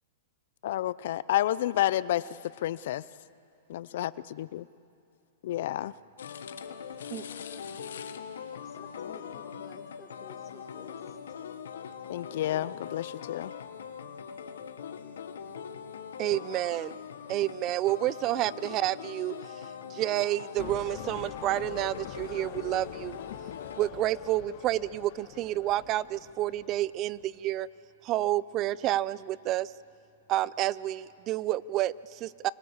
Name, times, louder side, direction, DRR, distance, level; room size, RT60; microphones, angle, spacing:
voice 1, 0.6-2.3 2.6-3.0 3.7-4.1 4.4-4.6 5.4-5.9 12.1-13.5, left 13 dB, 60° left, 18 dB, 0.5 m, -30 dB
sound 1, 6.2-23.9, left 7 dB, 85° left, 1.4 m, -42 dB
voice 2, 6.7-7.7 8.5-11.3, left 5 dB, 25° left, 1 dB, 3.3 m, -53 dB
voice 3, 16.2-17.0 17.3-19.3 19.9-23.2 23.8-27.7 28.0-29.7 30.3-32.5, right 14 dB, 35° right, 20 dB, 0.5 m, -29 dB
sound 2, 20.6-27.4, left 13 dB, 45° left, 1.1 m, -45 dB
26.5 x 25.5 x 7.3 m, 2.5 s
hypercardioid pair, 140°, 0 cm